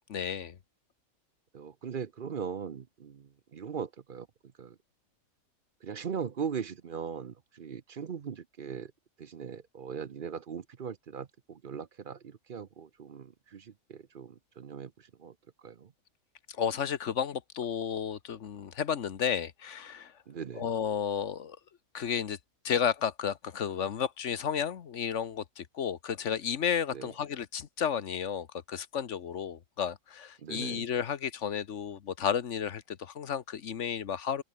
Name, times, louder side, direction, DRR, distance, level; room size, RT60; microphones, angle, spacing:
voice 1, 0.1-0.6 16.6-20.1 20.6-21.6 21.9-22.4 22.6-34.4, left 8 dB, 60° left, 1.3 m, -32 dB
voice 2, 1.5-4.3 4.6-4.8 5.8-8.9 9.2-15.9 20.3-20.7 26.9-27.1 30.4-30.9, right 7 dB, 45° right, 0.8 m, -40 dB
omnidirectional pair, 1.4 m